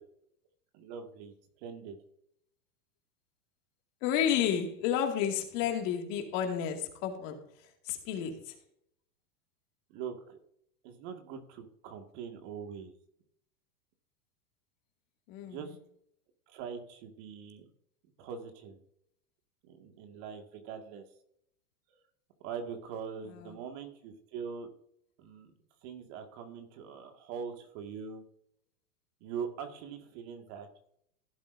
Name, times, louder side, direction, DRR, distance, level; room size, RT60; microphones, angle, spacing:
voice 1, 0.7-2.0 9.9-10.4 10.8-12.9 15.4-15.8 16.5-17.7 18.2-18.8 19.6-21.0 22.4-24.7 25.2-25.5 25.8-28.2 29.2-30.7, right 6 dB, 50° right, 2.0 m, -42 dB
voice 2, 4.0-7.4 7.9-8.5 15.3-15.6 23.3-23.6, left 9 dB, 55° left, 2.3 m, -31 dB
15.5 x 7.6 x 2.6 m
hypercardioid pair, 125°, 46 cm